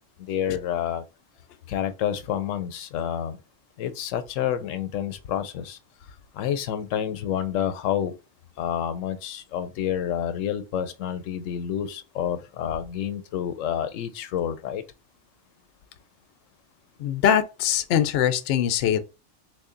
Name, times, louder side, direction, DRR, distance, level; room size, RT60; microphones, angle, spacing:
voice 1, 0.2-1.0 1.7-3.4 3.8-5.8 6.3-8.1 8.6-14.8, left 9 dB, 90° left, 0.9 m, -29 dB
voice 2, 17.0-19.0, left 9 dB, 65° left, 0.7 m, -22 dB
3.2 x 2.5 x 3.7 m
omnidirectional pair, 1.3 m